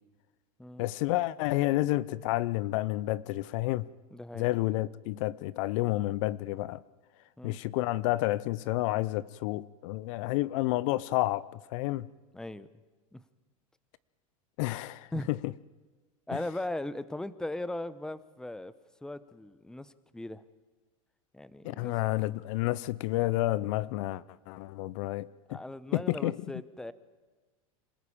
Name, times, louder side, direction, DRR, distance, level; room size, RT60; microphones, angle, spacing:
voice 1, 0.8-3.9 4.3-6.8 7.4-12.1 14.6-15.5 21.6-25.6 25.9-26.4, left 17 dB, 60° left, 0.7 m, -30 dB
voice 2, 4.1-4.5 7.4-7.6 12.3-12.7 13.1-13.2 15.1-15.3 16.3-18.7 19.0-20.4 21.3-21.9 25.5-26.9, left 1 dB, 5° left, 0.9 m, -38 dB
26.5 x 14.0 x 8.8 m
supercardioid pair, 115°, 18 cm